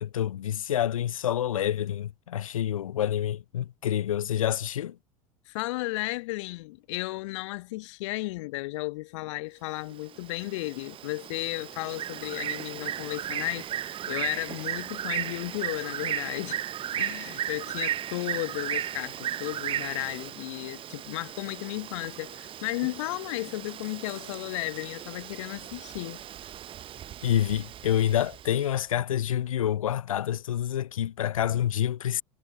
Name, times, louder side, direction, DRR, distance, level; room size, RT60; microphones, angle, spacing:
voice 1, 0.0-5.0 27.2-32.2, left 11 dB, 75° left, 0.5 m, -27 dB
voice 2, 5.5-16.6 16.9-26.2, left 21 dB, 60° left, 1.3 m, -34 dB
Bird, 9.9-28.7, right 11 dB, 30° right, 0.7 m, -36 dB
figure-of-eight pair, 75°, 18 cm